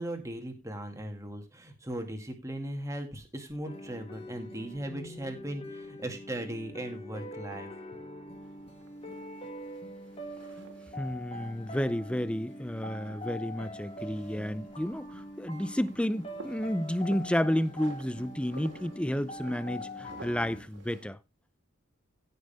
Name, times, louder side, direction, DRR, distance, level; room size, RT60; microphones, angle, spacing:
voice 1, 0.0-7.7, right 1 dB, 15° right, 2.3 m, -38 dB
sound 1, 3.6-20.6, left 1 dB, 30° left, 2.3 m, -44 dB
sound 2, 8.5-21.1, right 2 dB, 60° right, 2.4 m, -53 dB
voice 2, 11.0-21.2, equal, 5° left, 0.5 m, -31 dB
16.0 x 6.6 x 3.5 m
head